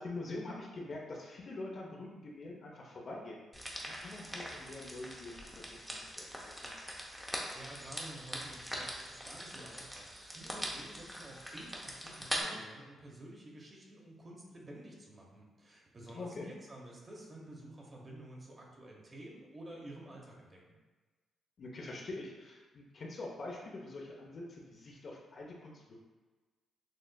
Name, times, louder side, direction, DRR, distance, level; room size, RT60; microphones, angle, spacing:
voice 1, 0.0-3.5 3.8-6.7 16.1-16.5 21.6-26.0, left 2 dB, 45° left, -2 dB, 0.7 m, -45 dB
sound 1, 3.5-12.4, equal, 5° right, 0.6 m, -42 dB
voice 2, 7.2-20.8, right 1 dB, 30° right, -2 dB, 0.8 m, -51 dB
6.4 x 2.4 x 2.2 m, 1.3 s
cardioid pair, 125°, 0 cm